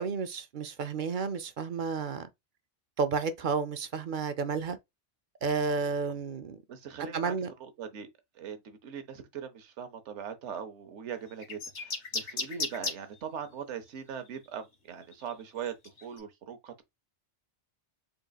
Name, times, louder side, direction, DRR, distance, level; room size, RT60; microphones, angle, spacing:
voice 1, 0.0-2.3 3.0-4.8 5.4-6.6 7.1-7.5, right 5 dB, 55° right, 0.6 m, -31 dB
voice 2, 6.7-7.3 7.6-8.1 8.3-15.7 16.0-16.8, right 7 dB, 80° right, 1.1 m, -40 dB
sound 1, 11.4-13.0 14.2-14.4 15.0-16.2, left 3 dB, 75° left, 1.6 m, -34 dB
4.2 x 3.7 x 2.3 m
omnidirectional pair, 1.2 m